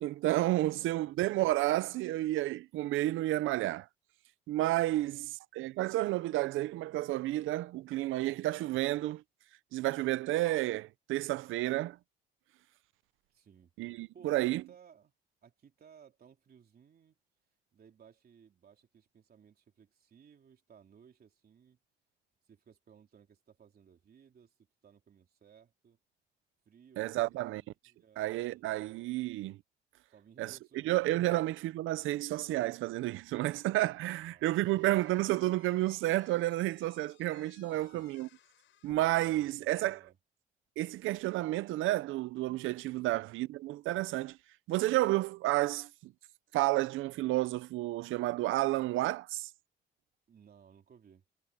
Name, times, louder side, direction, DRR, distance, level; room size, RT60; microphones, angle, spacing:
voice 1, 0.0-3.9 4.5-9.2 9.7-12.0 13.8-14.6 27.0-27.6 28.2-29.6 30.4-38.3 38.8-40.0 40.8-44.4 44.7-46.1 46.5-49.5, right 16 dB, 90° right, 0.6 m, -31 dB
voice 2, 0.5-1.1 4.9-5.3 13.3-15.1 15.4-17.2 17.7-21.8 22.5-24.5 24.8-26.0 26.7-28.6 30.1-31.3 34.1-34.9 37.7-38.1 39.1-40.2 43.1-43.3 50.3-51.2, right 7 dB, 50° right, 3.5 m, -60 dB
Slam / Squeak, 34.4-39.4, left 11 dB, 75° left, 5.8 m, -64 dB
cardioid pair, 90°, 20 cm